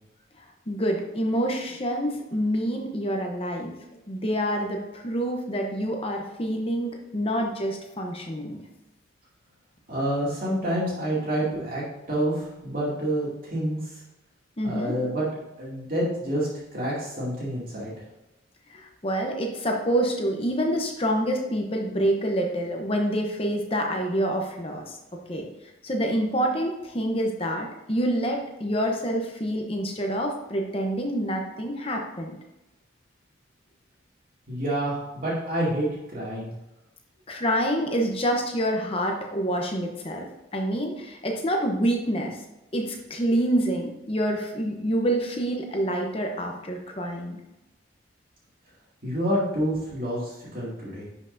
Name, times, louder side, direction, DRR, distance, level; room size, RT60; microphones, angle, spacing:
voice 1, 0.7-3.7 4.1-8.6 14.6-15.0 18.7-25.0 25.3-25.5 25.8-32.3 37.3-42.4 42.7-47.4, equal, 30° left, 2 dB, 0.9 m, -27 dB
voice 2, 9.9-13.8 14.6-15.3 15.6-17.9 34.5-36.5 49.0-51.0, right 1 dB, 45° right, -7 dB, 2.5 m, -28 dB
10.5 x 5.6 x 2.7 m, 0.96 s
head